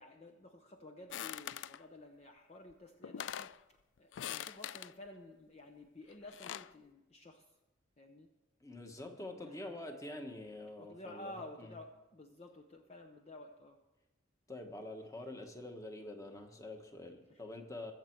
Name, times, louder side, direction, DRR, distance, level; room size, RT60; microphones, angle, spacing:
voice 1, 0.0-7.4 8.0-8.3 9.4-9.8 10.8-13.8 17.3-17.4, left 1 dB, 35° left, 4 dB, 0.7 m, -52 dB
sound 1, 1.1-1.8 2.7-2.8 3.0-3.6 4.1-4.9 6.1-6.7, left 10 dB, 70° left, 0.3 m, -43 dB
voice 2, 8.6-11.7 14.5-17.9, left 1 dB, 15° left, 4 dB, 1.3 m, -46 dB
22.0 x 7.5 x 4.6 m, 1.1 s
head